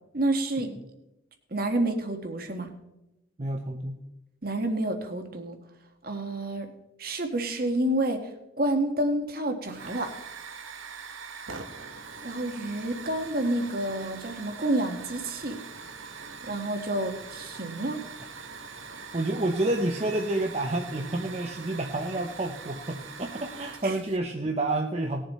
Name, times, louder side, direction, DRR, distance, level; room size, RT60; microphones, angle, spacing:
voice 1, 0.1-0.7 1.5-2.7 4.4-5.6 6.0-6.7 7.0-8.3 8.6-10.1 12.2-15.6 16.4-18.0 23.8-23.9, right 1 dB, 50° right, 6 dB, 1.4 m, -29 dB
voice 2, 3.4-4.0 19.1-25.2, right 2 dB, 30° right, 3 dB, 0.7 m, -29 dB
Hiss / Fire, 9.7-24.2, right 5 dB, 90° right, 1.4 m, -43 dB
19.0 x 7.2 x 4.2 m, 0.91 s
head